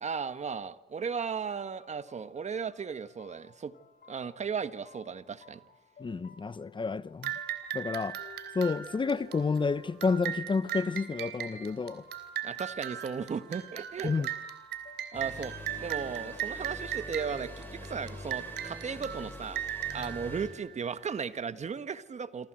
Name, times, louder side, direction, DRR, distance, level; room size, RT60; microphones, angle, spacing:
voice 1, 0.0-3.7 4.1-5.6 12.4-14.2 15.1-19.6 19.9-22.5, right 6 dB, 40° right, 1.5 m, -36 dB
sound 1, 1.0-18.7, left 5 dB, 60° left, 4.2 m, -58 dB
voice 2, 6.0-7.3 7.7-8.2 8.5-12.0 14.0-14.3, left 4 dB, 30° left, 0.9 m, -30 dB
sound 2, 7.2-21.4, right 11 dB, 85° right, 3.2 m, -39 dB
sound 3, 15.1-20.5, left 2 dB, 10° left, 7.4 m, -45 dB
27.5 x 26.0 x 7.8 m
cardioid pair, 80°, 17 cm